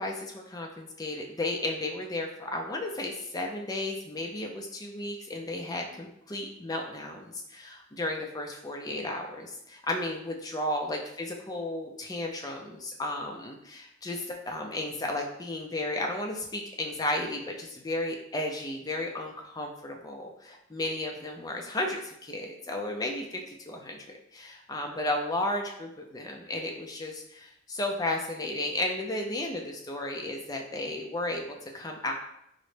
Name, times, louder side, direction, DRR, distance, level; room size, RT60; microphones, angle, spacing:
voice 1, 0.0-32.1, left 1 dB, 20° left, 2 dB, 0.4 m, -34 dB
3.8 x 2.1 x 3.2 m, 0.79 s
head